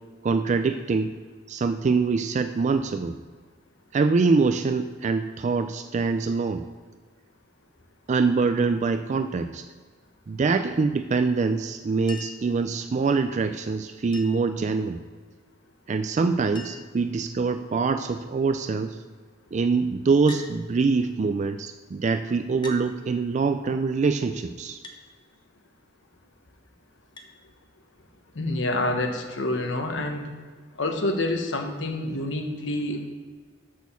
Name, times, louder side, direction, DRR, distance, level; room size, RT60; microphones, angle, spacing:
voice 1, 0.2-1.1 1.5-3.2 3.9-6.6 8.1-9.6 10.3-15.0 15.9-19.0 19.5-24.8, right 4 dB, 40° right, 8 dB, 0.3 m, -24 dB
Chink clink, 12.1-12.5 14.1-14.5 15.9-16.0 16.2-16.3 16.6-17.0 17.8-18.1 20.3-20.5 21.6-21.7 22.6-22.9 24.8-25.0 27.2-27.3 28.8-28.9, left 3 dB, 25° left, 0.9 m, -42 dB
voice 2, 28.3-30.3 30.8-33.1, left 2 dB, 75° left, 4 dB, 1.1 m, -27 dB
6.4 x 6.2 x 6.9 m, 1.5 s
head